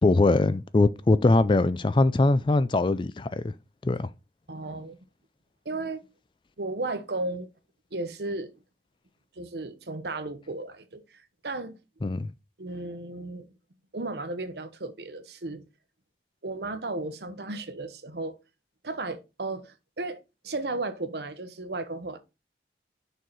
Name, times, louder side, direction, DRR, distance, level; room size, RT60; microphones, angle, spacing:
voice 1, 0.0-3.5 3.8-4.1 12.0-12.3, left 2 dB, 30° left, 0.4 m, -22 dB
voice 2, 4.5-5.0 5.6-6.1 6.6-7.5 7.9-8.5 9.4-11.8 12.6-13.4 13.9-15.6 16.4-18.4 18.8-22.2, right 2 dB, 70° right, 1.0 m, -34 dB
6.5 x 4.6 x 4.0 m
head